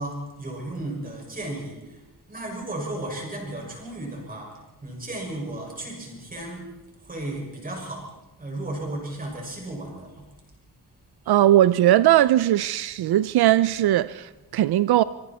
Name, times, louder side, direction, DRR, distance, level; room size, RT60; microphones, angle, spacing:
voice 1, 0.0-1.8 2.3-4.5 4.8-6.7 7.1-8.0 8.4-10.1 11.2-11.5, right 1 dB, 25° right, 6.2 m, -34 dB
voice 2, 11.3-15.0, right 13 dB, 85° right, 0.6 m, -19 dB
25.0 x 24.0 x 4.4 m
wide cardioid pair, 175°, 37 cm